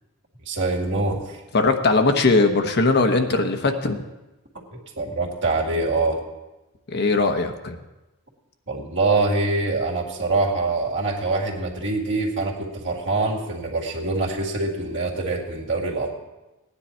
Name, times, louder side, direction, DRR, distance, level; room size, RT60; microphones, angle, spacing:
voice 1, 0.5-1.4 4.7-6.2 8.7-16.2, right 3 dB, 55° right, -2 dB, 2.2 m, -24 dB
voice 2, 1.5-4.0 6.9-7.8, left 3 dB, 50° left, 5 dB, 1.0 m, -20 dB
16.5 x 9.9 x 4.4 m, 1.1 s
head